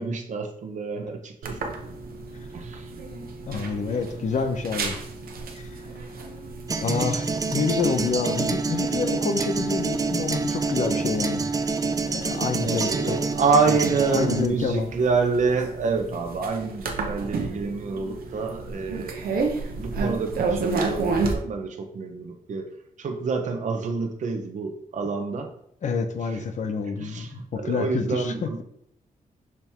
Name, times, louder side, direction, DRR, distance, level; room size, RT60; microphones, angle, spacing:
voice 1, 0.0-1.6 2.5-2.9 12.6-19.2 19.8-22.7 23.0-25.5 26.3-26.4 27.0-28.6, right 4 dB, 55° right, 4 dB, 0.8 m, -27 dB
sound 1, 1.4-21.3, right 3 dB, 85° right, 1.0 m, -33 dB
voice 2, 3.5-5.0 5.5-5.7 6.8-11.4 12.1-13.4 13.7-13.8 14.1-14.9 25.8-27.3 27.5-28.6, left 5 dB, 55° left, 7 dB, 0.7 m, -28 dB
sound 2, 6.7-14.5, right 4 dB, 25° right, 0.4 m, -27 dB
6.0 x 3.5 x 4.4 m, 0.70 s
wide cardioid pair, 165°, 15 cm